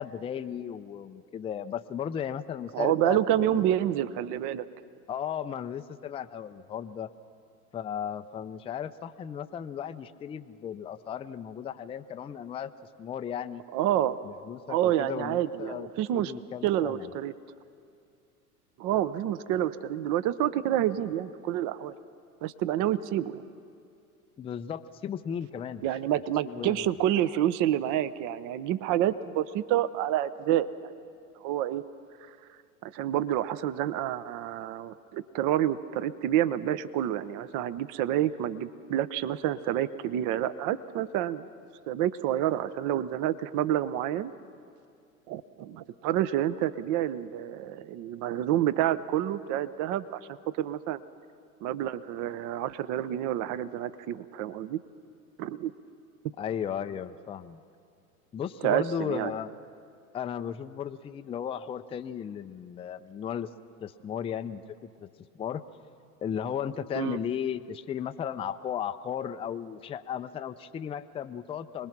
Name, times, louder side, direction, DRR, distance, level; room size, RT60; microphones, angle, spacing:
voice 1, 0.0-3.6 5.1-7.1 7.7-12.7 13.0-13.6 14.2-15.9 16.1-17.1 24.4-25.9 26.4-26.9 56.4-57.6 58.3-59.5 60.1-63.5 63.8-64.6 65.0-65.1 65.3-65.7 66.2-71.9, left 8 dB, 15° left, 9 dB, 0.4 m, -35 dB
voice 2, 2.7-4.7 13.7-14.2 14.7-16.3 16.6-17.3 18.8-21.9 22.4-23.5 25.8-30.7 31.4-31.8 32.8-41.4 41.9-44.3 45.3-50.2 50.6-51.0 51.6-54.8 55.4-55.7 58.6-59.3 66.9-67.2, right 12 dB, 45° right, 15 dB, 0.8 m, -28 dB
26.0 x 20.0 x 6.0 m, 2.4 s
hypercardioid pair, 95°, 44 cm